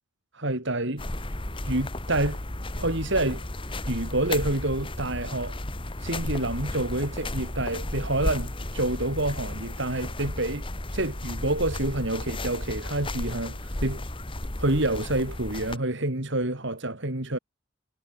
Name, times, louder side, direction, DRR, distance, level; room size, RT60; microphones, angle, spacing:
voice 1, 0.3-1.0 1.6-2.4 2.8-3.4 3.9-5.6 6.0-10.6 10.9-14.0 14.6-17.4, right 1 dB, 60° right, 3.2 m, -28 dB
sound 1, 1.0-15.8, left 1 dB, 25° left, 1.6 m, -34 dB
head